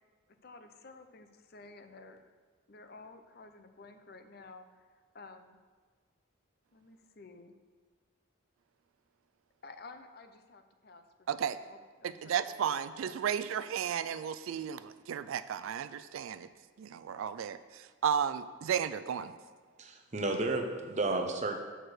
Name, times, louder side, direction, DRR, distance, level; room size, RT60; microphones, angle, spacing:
voice 1, 0.4-2.2 2.7-4.6 5.1-5.6 6.7-7.5 9.6-11.0 11.7-12.4 13.0-13.1, left 3 dB, 50° left, 8 dB, 0.5 m, -52 dB
voice 2, 11.3-11.6 12.0-16.5 16.8-19.3, right 8 dB, 80° right, 13 dB, 0.3 m, -34 dB
voice 3, 19.8-21.6, right 2 dB, 35° right, 4 dB, 0.7 m, -32 dB
6.6 x 4.4 x 6.5 m, 1.5 s
head